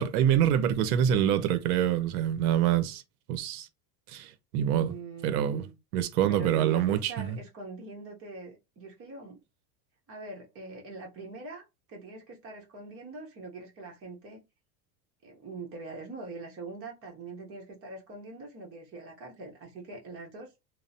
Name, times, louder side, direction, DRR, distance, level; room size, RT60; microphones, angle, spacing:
voice 1, 0.0-3.0 3.3-3.7 4.1-4.9 5.2-5.6 5.9-7.4, right 10 dB, 70° right, 0.7 m, -26 dB
voice 2, 4.6-5.8 6.3-9.4 10.1-14.4 15.2-20.5, right 3 dB, 30° right, 0.9 m, -43 dB
3.1 x 2.0 x 2.7 m
supercardioid pair, 140°, 47 cm